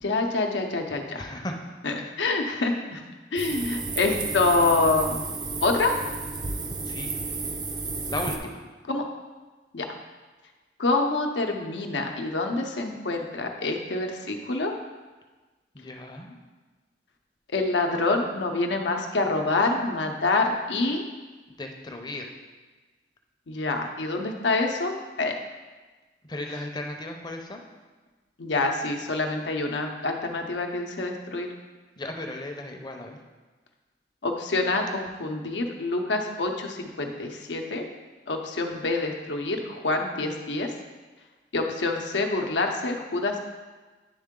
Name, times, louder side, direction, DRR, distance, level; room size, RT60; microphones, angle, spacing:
voice 1, 0.0-1.2 1.8-3.0 3.3-5.2 5.6-6.0 8.9-9.0 9.7-9.9 10.8-14.7 17.5-21.0 23.5-24.9 25.2-25.3 28.4-31.5 34.2-37.8 38.3-40.7 41.5-43.4, left 3 dB, 80° left, 3 dB, 0.7 m, -26 dB
voice 2, 1.1-1.5 1.9-2.1 6.8-7.1 8.1-8.6 15.7-16.4 21.6-22.3 26.3-27.6 32.0-33.2, left 1 dB, 25° left, 3 dB, 0.6 m, -35 dB
sound 1, 3.4-8.4, right 3 dB, 25° right, 0.5 m, -32 dB
10.0 x 3.6 x 3.7 m, 1.3 s
head